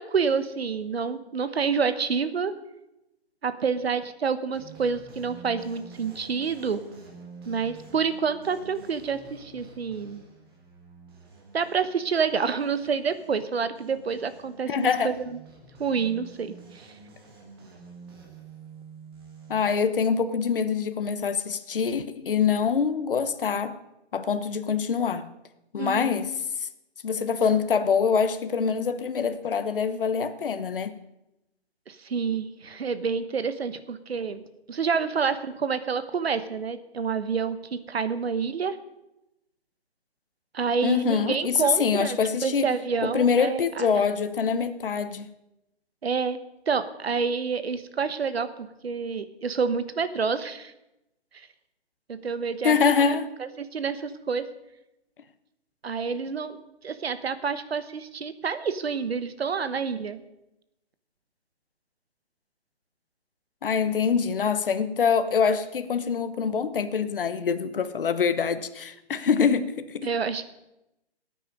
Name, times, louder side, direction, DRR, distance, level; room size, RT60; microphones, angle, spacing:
voice 1, 0.0-2.5 3.4-6.8 7.5-10.2 11.5-15.4 15.8-16.9 25.8-26.2 31.9-34.4 34.7-38.8 40.5-42.2 42.4-43.9 46.0-46.4 46.7-50.7 52.1-54.4 55.8-56.6 56.8-60.2 70.0-70.5, right 5 dB, 70° right, 1.2 m, -28 dB
sound 1, 4.5-19.6, right 3 dB, 20° right, 1.8 m, -48 dB
voice 2, 14.7-15.1 19.5-23.8 24.1-25.3 25.7-26.3 26.6-26.7 27.0-31.0 40.8-42.7 43.0-45.3 52.6-53.3 63.6-70.1, left 6 dB, 55° left, 1.0 m, -25 dB
16.0 x 9.2 x 5.3 m
hypercardioid pair, 170°, 32 cm